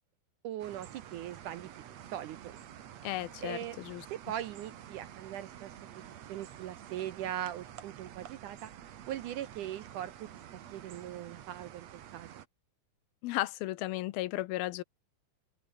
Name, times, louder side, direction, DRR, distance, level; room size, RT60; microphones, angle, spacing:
voice 1, 0.4-2.6 3.4-3.8 4.1-6.0 6.3-8.7 9.1-10.1 10.7-12.3, right 12 dB, 70° right, 2.0 m, -40 dB
sound 1, 0.6-12.5, right 10 dB, 55° right, 2.2 m, -49 dB
voice 2, 3.0-4.1 13.2-14.8, left 17 dB, 80° left, 2.5 m, -35 dB
open air
omnidirectional pair, 4.5 m